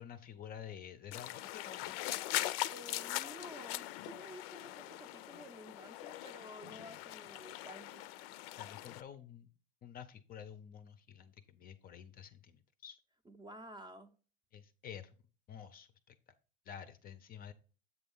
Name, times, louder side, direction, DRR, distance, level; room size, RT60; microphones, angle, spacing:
voice 1, 0.0-1.9 8.6-9.5 9.8-13.0 14.5-15.1 15.5-16.2 16.7-17.5, left 8 dB, 30° left, 0.5 m, -50 dB
sound 1, 1.1-9.0, left 16 dB, 75° left, 0.5 m, -41 dB
voice 2, 2.7-8.1 13.3-14.1, right 1 dB, 15° right, 0.6 m, -52 dB
8.0 x 3.4 x 5.4 m
supercardioid pair, 130°, 30 cm